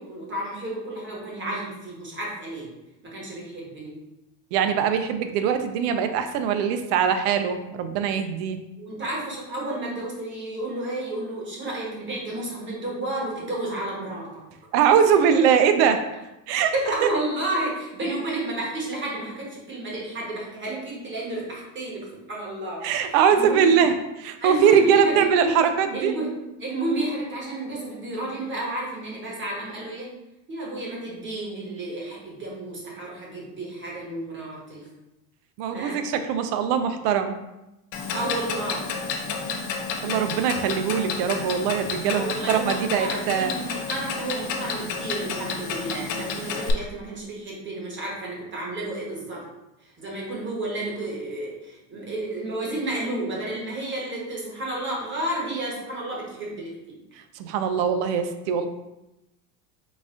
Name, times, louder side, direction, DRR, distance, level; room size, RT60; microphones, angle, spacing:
voice 1, 0.0-2.7 3.1-4.0 8.8-14.4 16.7-23.7 24.4-25.6 25.9-26.3 26.6-30.1 30.5-34.9 35.7-36.0 38.1-38.8 42.1-49.4 49.8-57.0, right 2 dB, 25° right, -4 dB, 1.2 m, -31 dB
voice 2, 4.5-8.6 14.7-16.0 16.5-16.7 22.8-26.1 35.6-37.4 40.0-43.5 57.3-58.7, right 7 dB, 70° right, 8 dB, 0.6 m, -22 dB
Clock, 37.9-46.7, left 5 dB, 55° left, 0.7 m, -31 dB
4.0 x 2.4 x 3.7 m, 0.93 s
supercardioid pair, 130°, 48 cm